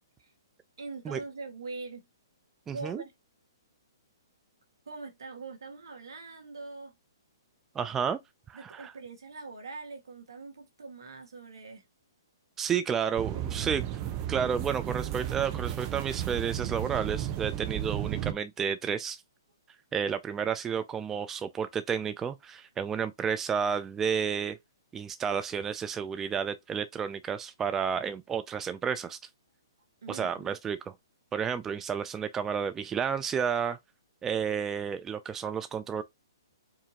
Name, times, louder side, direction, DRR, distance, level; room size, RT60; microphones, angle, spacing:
voice 1, 0.8-2.1 2.7-3.1 4.9-6.9 8.5-11.8 13.2-13.8 30.0-30.5, right 3 dB, 75° right, 1.8 m, -43 dB
voice 2, 2.7-3.0 7.8-8.2 8.5-8.9 12.6-13.8 14.3-19.2 19.9-24.6 24.9-29.2 30.1-30.9 31.3-33.8 34.2-36.0, right 7 dB, 15° right, 0.4 m, -31 dB
sound 1, 13.2-18.3, right 11 dB, 35° right, 0.8 m, -33 dB
4.9 x 2.7 x 2.8 m
hypercardioid pair, 130°, 2 cm